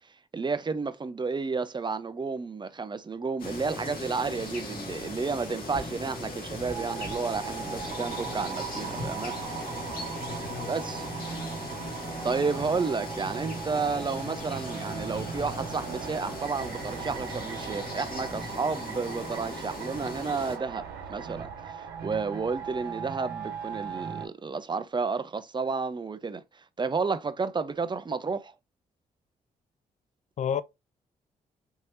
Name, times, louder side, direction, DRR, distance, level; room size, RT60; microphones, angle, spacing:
voice 1, 0.3-9.7 10.7-11.1 12.2-26.4 26.8-28.5, right 4 dB, 30° right, 0.7 m, -31 dB
sound 1, 3.4-20.6, left 2 dB, 65° left, 1.9 m, -38 dB
sound 2, 6.7-24.3, right 6 dB, 85° right, 0.9 m, -38 dB
voice 2, 10.2-10.7 30.4-30.6, left 8 dB, 50° left, 0.4 m, -31 dB
4.6 x 3.2 x 2.7 m
supercardioid pair, 50°, 16 cm